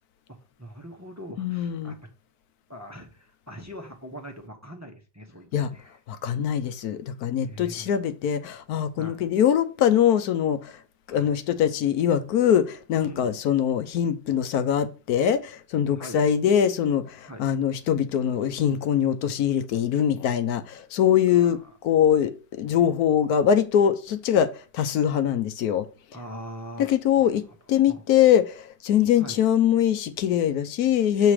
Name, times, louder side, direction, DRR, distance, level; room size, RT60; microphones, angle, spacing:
voice 1, 0.3-2.0 2.7-6.0 7.4-7.9 9.0-9.2 11.1-11.3 13.0-13.4 15.9-16.3 17.3-17.4 21.3-21.7 26.1-26.9 27.2-27.3 27.9-28.0 29.2-29.4, equal, 15° right, 0.5 m, -42 dB
voice 2, 1.4-2.0 5.5-5.7 6.1-10.8 11.1-25.9 26.8-27.4 27.7-31.3, left 9 dB, 65° left, 1.1 m, -23 dB
7.2 x 4.0 x 4.7 m
omnidirectional pair, 1.9 m